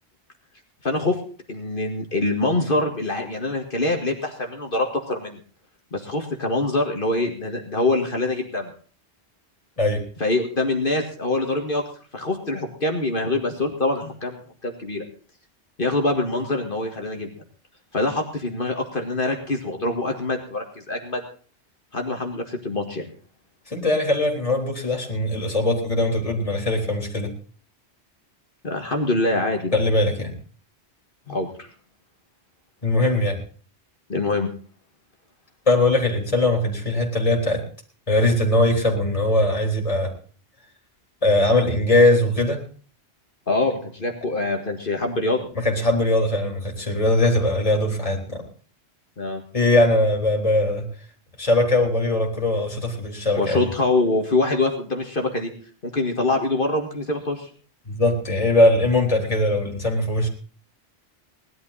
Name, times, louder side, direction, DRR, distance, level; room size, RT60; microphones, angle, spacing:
voice 1, 0.8-1.2 1.5-5.4 5.9-8.7 10.2-11.8 12.1-15.0 15.8-17.3 17.9-21.2 21.9-23.1 28.6-29.8 31.3-31.7 34.1-34.5 43.5-45.5 49.2-49.4 53.4-55.5 55.8-57.5, left 2 dB, 50° left, 3 dB, 2.1 m, -24 dB
voice 2, 23.7-27.3 29.7-30.3 32.8-33.4 35.7-37.6 38.1-40.1 41.2-42.6 45.6-48.4 49.5-50.9 51.4-53.6 57.9-60.3, left 1 dB, 30° left, 0 dB, 3.8 m, -20 dB
19.5 x 12.0 x 4.2 m, 0.42 s
omnidirectional pair, 1.2 m